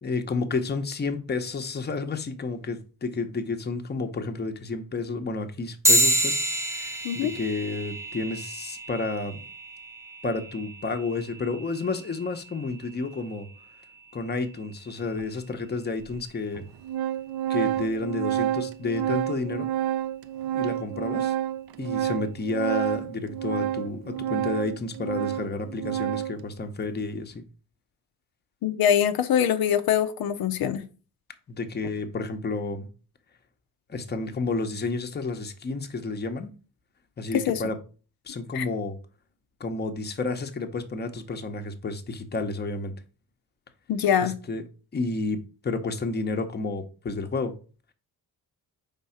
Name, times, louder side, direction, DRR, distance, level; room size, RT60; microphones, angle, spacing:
voice 1, 0.0-6.4 6.7-9.4 10.2-13.5 14.1-16.7 17.5-19.7 20.5-21.3 21.8-27.5 31.5-32.9 33.9-36.5 37.2-37.8 38.2-39.0 39.6-42.9 44.2-44.6 44.9-47.6, left 3 dB, 30° left, 0.8 m, -31 dB
sound 1, 5.8-15.7, equal, 10° right, 0.7 m, -30 dB
Organ, 15.2-15.3 16.1-16.2 16.5-26.4, right 11 dB, 75° right, 0.5 m, -29 dB
voice 2, 28.6-30.8 37.5-37.6 38.5-38.6 43.9-44.3, left 9 dB, 75° left, 0.7 m, -23 dB
4.8 x 3.7 x 5.6 m
cardioid pair, 110°, 36 cm